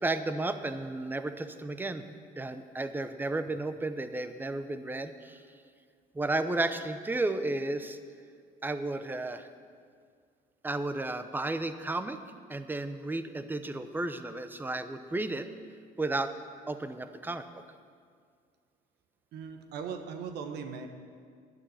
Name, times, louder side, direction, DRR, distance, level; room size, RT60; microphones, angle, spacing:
voice 1, 0.0-5.4 6.1-8.0 8.6-9.5 10.6-12.2 12.5-15.5 16.0-16.3 16.7-17.6, right 2 dB, 10° right, 10 dB, 0.7 m, -33 dB
voice 2, 19.3-20.9, right 6 dB, 75° right, 6 dB, 1.3 m, -39 dB
11.5 x 6.5 x 9.2 m, 2.1 s
cardioid pair, 110°, 17 cm